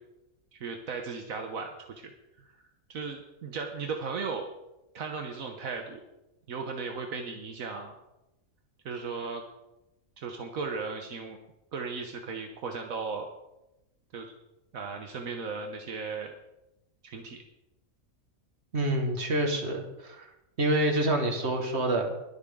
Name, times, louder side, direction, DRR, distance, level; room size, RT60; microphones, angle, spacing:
voice 1, 0.5-2.5 2.9-4.5 4.9-6.0 6.5-8.0 8.8-9.4 10.2-11.4 11.7-13.3 14.1-14.3 14.7-16.4 17.0-17.4, right 4 dB, 80° right, 4 dB, 1.5 m, -36 dB
voice 2, 18.7-20.3 20.6-22.1, right 1 dB, 50° right, 3 dB, 2.1 m, -27 dB
21.0 x 8.1 x 3.8 m, 0.93 s
omnidirectional pair, 1.4 m